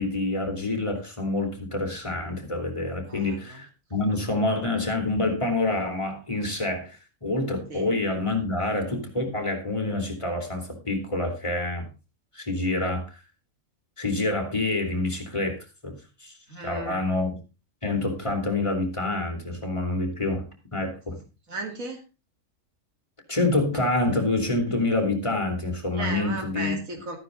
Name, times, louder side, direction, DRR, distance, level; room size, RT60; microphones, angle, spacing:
voice 1, 0.0-11.9 12.3-13.2 14.0-15.6 15.8-16.3 16.6-17.3 17.8-20.5 20.7-21.2 23.3-26.8, left 2 dB, 20° left, 4 dB, 3.0 m, -27 dB
voice 2, 3.1-3.6 7.7-7.9 16.5-17.0 21.5-22.0 25.9-27.2, right 3 dB, 90° right, 3 dB, 2.7 m, -35 dB
13.5 x 9.5 x 3.8 m, 0.31 s
omnidirectional pair, 1.4 m